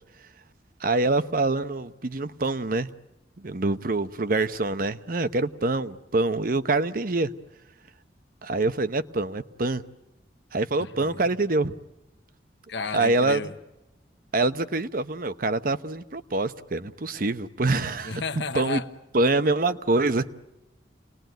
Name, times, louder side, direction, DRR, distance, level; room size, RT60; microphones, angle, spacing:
voice 1, 0.8-2.9 3.4-7.3 8.4-9.8 10.5-11.7 12.9-13.5 14.3-18.2 18.5-18.8 19.1-20.3, right 2 dB, 50° right, 0.9 m, -25 dB
voice 2, 10.8-11.2 12.7-13.5 18.0-18.9, left 4 dB, 75° left, 1.1 m, -32 dB
28.5 x 20.0 x 9.2 m
head